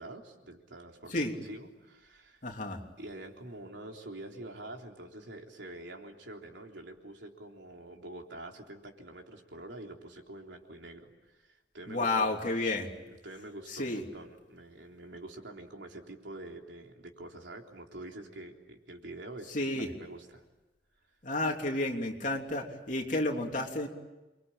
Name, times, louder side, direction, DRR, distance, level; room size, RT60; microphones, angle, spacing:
voice 1, 0.0-2.4 3.0-12.3 13.1-20.4, right 1 dB, 90° right, 2 dB, 3.7 m, -46 dB
voice 2, 2.4-2.8 11.9-12.9 13.7-14.0 19.5-19.9 21.2-23.9, left 2 dB, 45° left, 1 dB, 3.3 m, -31 dB
29.0 x 23.5 x 8.9 m, 1.1 s
head